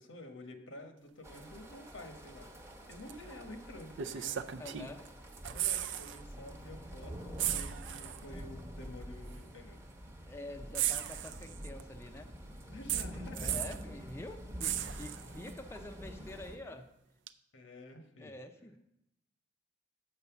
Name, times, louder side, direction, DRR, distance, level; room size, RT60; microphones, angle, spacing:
voice 1, 0.0-2.5 2.9-4.4 5.5-9.8 12.7-13.7 17.5-18.3, left 1 dB, 90° left, 5 dB, 1.1 m, -50 dB
sound 1, 1.2-16.6, equal, 15° right, 0.9 m, -47 dB
sound 2, 3.1-3.2 4.0-5.1 5.3-6.2 6.5-6.6 7.4-8.2 9.3-9.4 10.7-11.8 12.9-13.8 14.6-15.5 17.3-17.4, right 11 dB, 70° right, 0.4 m, -36 dB
voice 2, 4.6-5.0 10.3-12.3 13.3-16.9 18.2-18.8, left 2 dB, 15° left, 5 dB, 0.4 m, -47 dB
6.5 x 5.6 x 7.0 m, 0.85 s
head